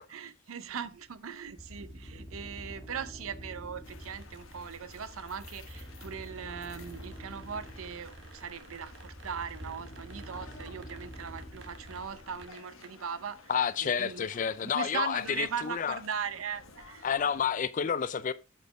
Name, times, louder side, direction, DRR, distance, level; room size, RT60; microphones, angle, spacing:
voice 1, 0.0-13.4 13.8-14.3 14.6-17.1, right 7 dB, 80° right, 0.6 m, -39 dB
sound 1, 0.6-17.5, right 4 dB, 55° right, 1.0 m, -58 dB
sound 2, 1.6-12.5, equal, 20° left, 1.6 m, -47 dB
sound 3, 3.8-17.5, left 4 dB, 80° left, 1.1 m, -54 dB
voice 2, 13.5-16.0 17.0-18.3, left 7 dB, 35° left, 0.4 m, -30 dB
8.0 x 4.3 x 4.7 m
head